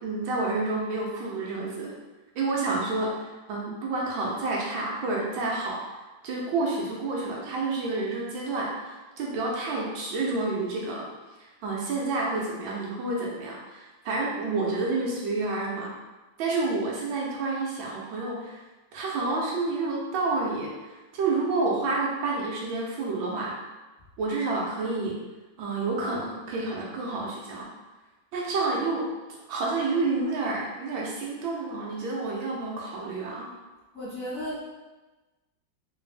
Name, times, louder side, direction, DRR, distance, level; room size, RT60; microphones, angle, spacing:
voice 1, 0.0-1.9 2.3-5.8 6.2-11.1 11.4-15.9 16.4-18.6 18.9-23.6 24.2-25.2 25.6-27.7 28.3-29.1 29.5-33.5, right 3 dB, 80° right, -3 dB, 1.5 m, -29 dB
voice 2, 33.9-34.6, equal, 25° left, -11 dB, 1.6 m, -34 dB
3.4 x 3.0 x 3.2 m, 1.2 s
omnidirectional pair, 2.1 m